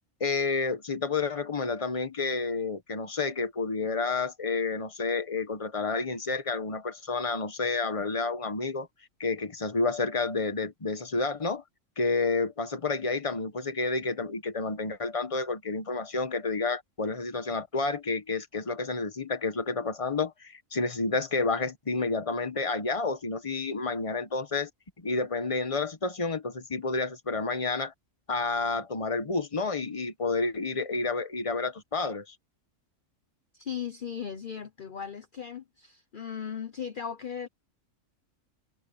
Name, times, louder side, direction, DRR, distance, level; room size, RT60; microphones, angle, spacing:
voice 1, 0.2-8.9 9.2-11.6 12.0-24.7 25.0-27.9 28.3-32.3, left 3 dB, 25° left, 1.3 m, -30 dB
voice 2, 33.5-37.5, left 8 dB, 45° left, 1.0 m, -37 dB
omnidirectional pair, 1.4 m